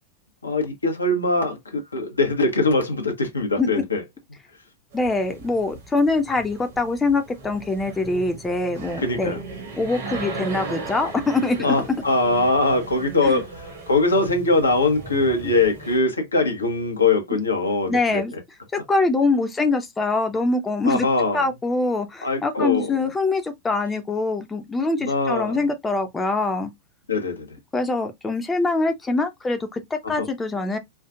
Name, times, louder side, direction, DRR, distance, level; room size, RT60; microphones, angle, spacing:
voice 1, 0.4-4.0 9.0-9.4 11.6-18.4 20.8-21.4 22.2-22.9 25.0-25.6 27.1-27.6 30.0-30.3, left 2 dB, 75° left, 0.9 m, -22 dB
voice 2, 4.9-9.4 9.8-11.7 13.3-13.4 17.9-18.3 18.7-21.1 21.3-26.7 27.7-30.8, left 3 dB, 15° left, 0.7 m, -24 dB
sound 1, 4.9-16.0, right 3 dB, 60° right, 1.5 m, -37 dB
4.5 x 2.4 x 2.3 m
figure-of-eight pair, 90°, 0 cm